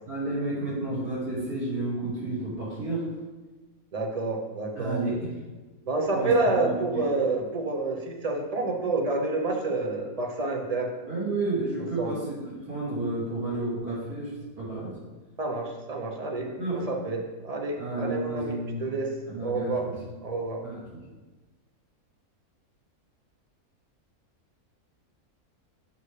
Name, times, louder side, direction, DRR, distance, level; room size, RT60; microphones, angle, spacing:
voice 1, 0.0-3.0 4.8-5.3 6.1-6.3 6.6-7.0 11.1-14.3 14.6-14.9 16.4-16.8 17.8-18.9 19.3-19.9 20.6-21.0, right 2 dB, 85° right, -8 dB, 3.0 m, -31 dB
voice 2, 3.9-5.0 5.9-10.9 12.0-12.1 15.4-19.1 19.4-19.9 20.2-20.6, right 3 dB, 35° right, 1 dB, 0.6 m, -28 dB
7.0 x 5.3 x 3.3 m, 1.2 s
omnidirectional pair, 1.6 m